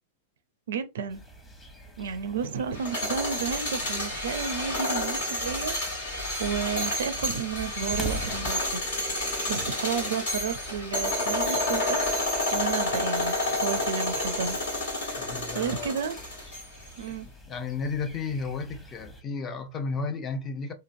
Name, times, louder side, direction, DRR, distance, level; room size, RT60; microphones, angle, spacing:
voice 1, 0.7-1.2 2.0-5.7 6.4-8.8 9.5-12.0 12.5-14.6 15.5-16.2 17.0-17.3, right 6 dB, 65° right, 0.4 m, -32 dB
sound 1, 1.1-19.2, equal, 10° left, 0.9 m, -43 dB
sound 2, 2.7-16.9, left 1 dB, 70° left, 1.3 m, -30 dB
voice 2, 15.2-16.0 17.1-17.2 17.5-20.7, left 4 dB, 30° left, 0.5 m, -33 dB
2.9 x 2.5 x 2.5 m
figure-of-eight pair, 100°, 0 cm